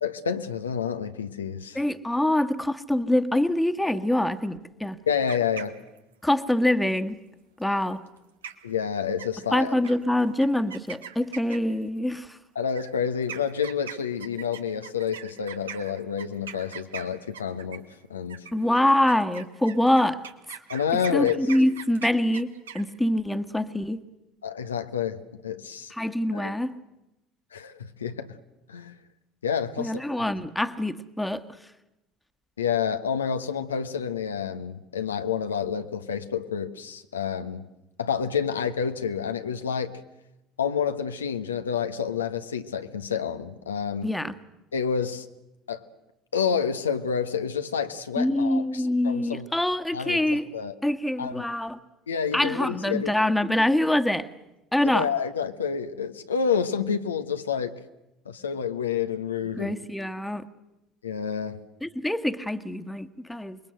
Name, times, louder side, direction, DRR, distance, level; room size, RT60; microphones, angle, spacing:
voice 1, 0.0-1.8 5.1-5.8 8.6-9.7 12.5-18.4 20.7-21.4 24.4-25.9 26.3-26.5 27.5-28.4 28.7-29.0 29.4-30.0 32.6-37.7 38.0-40.0 40.6-44.1 44.7-45.3 45.7-45.8 46.3-49.5 49.9-50.7 51.2-51.4 52.1-53.2 54.8-57.8 58.2-59.7 61.0-61.6, left 7 dB, 85° left, 1.1 m, -29 dB
voice 2, 1.8-5.0 6.2-7.2 7.6-8.0 9.5-12.4 18.5-20.2 21.1-24.0 25.9-26.8 29.8-31.4 44.0-44.4 48.2-50.5 50.8-51.8 52.3-54.3 54.7-55.1 59.6-60.4 61.8-63.6, left 1 dB, 5° left, 1.7 m, -25 dB
sound 1, 5.1-6.1 8.1-8.2 8.4-8.8 9.2-9.5 9.8-10.0 10.4-11.8 12.7-17.9 18.3-22.8, right 8 dB, 80° right, 1.6 m, -40 dB
27.5 x 22.0 x 7.9 m
figure-of-eight pair, 60°, 0 cm